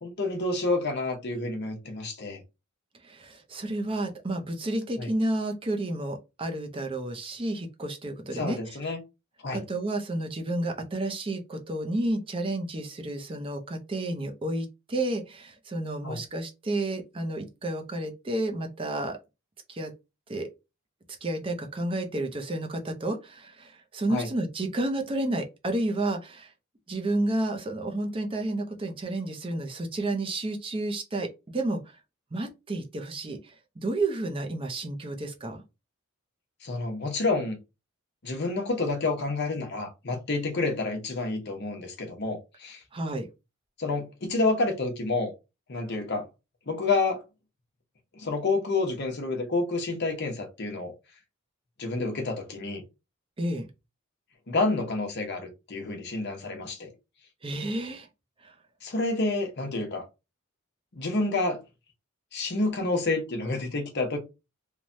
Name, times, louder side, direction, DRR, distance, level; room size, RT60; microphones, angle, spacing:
voice 1, 0.0-2.4 5.0-5.1 8.3-9.0 9.4-9.6 16.0-16.2 24.1-24.3 36.6-37.6 38.2-42.8 43.8-45.3 45.7-46.3 46.7-47.2 48.1-50.9 51.8-52.8 54.5-56.9 58.8-60.0 60.9-61.6 62.3-64.2, left 3 dB, 50° left, 0.8 m, -29 dB
voice 2, 3.1-8.6 9.5-19.2 19.7-19.9 20.3-20.5 21.2-26.5 26.9-31.3 31.5-31.8 32.3-33.4 33.8-35.6 42.9-43.3 53.4-53.7 57.4-58.1 58.4-58.5, right 2 dB, 25° right, 0.5 m, -31 dB
3.1 x 2.1 x 2.6 m
head